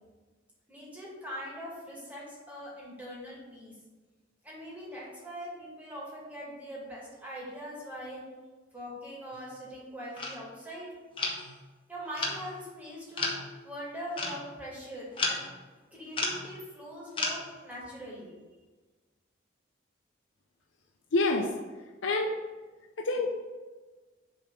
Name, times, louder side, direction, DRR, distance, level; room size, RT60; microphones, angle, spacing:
voice 1, 0.7-3.7 4.4-8.2 8.7-10.9 11.9-13.3 13.6-15.5 15.9-18.4, equal, 10° right, -6 dB, 2.1 m, -42 dB
sound 1, 9.3-9.4 10.2-10.4 11.2-11.5 12.2-12.4 13.2-13.4 14.2-14.4 15.2-15.6 16.2-16.5 17.2-17.3, left 2 dB, 30° left, 1.1 m, -32 dB
voice 2, 21.1-21.5 22.0-22.3 23.0-23.3, left 2 dB, 90° left, 1 dB, 0.6 m, -26 dB
7.0 x 3.5 x 6.1 m, 1.3 s
head